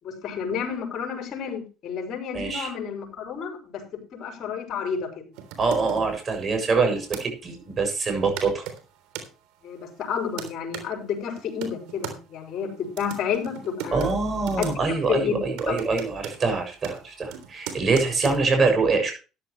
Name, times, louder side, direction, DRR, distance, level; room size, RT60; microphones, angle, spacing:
voice 1, 0.0-3.8 4.1-5.1 9.6-12.7 13.0-14.1 14.6-14.7 15.1-15.4 15.7-15.8, left 7 dB, 55° left, 4 dB, 5.4 m, -30 dB
voice 2, 2.3-2.7 5.6-8.6 13.9-19.1, right 4 dB, 35° right, 5 dB, 7.2 m, -24 dB
sound 1, 5.3-7.3 8.0-8.1 8.4-9.3 9.9-10.9 11.4-12.2 12.8-14.7 15.0-15.3 15.6-18.4, right 9 dB, 80° right, 3.4 m, -38 dB
13.5 x 11.5 x 3.2 m, 0.33 s
supercardioid pair, 95°, 0 cm